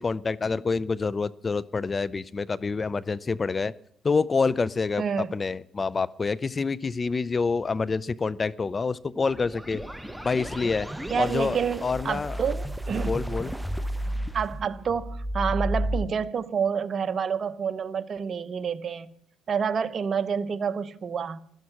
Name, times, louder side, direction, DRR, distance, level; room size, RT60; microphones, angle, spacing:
voice 1, 0.0-3.7 4.0-5.0 5.3-9.8 10.2-10.9 11.2-12.4 13.1-13.5, left 4 dB, 30° left, 0.5 m, -27 dB
voice 2, 5.0-5.3 11.1-13.1 14.3-19.1 19.5-21.4, right 6 dB, 45° right, 1.0 m, -28 dB
sound 1, 9.2-16.0, right 1 dB, 5° right, 0.8 m, -32 dB
16.0 x 13.0 x 5.9 m
cardioid pair, 90°, 0 cm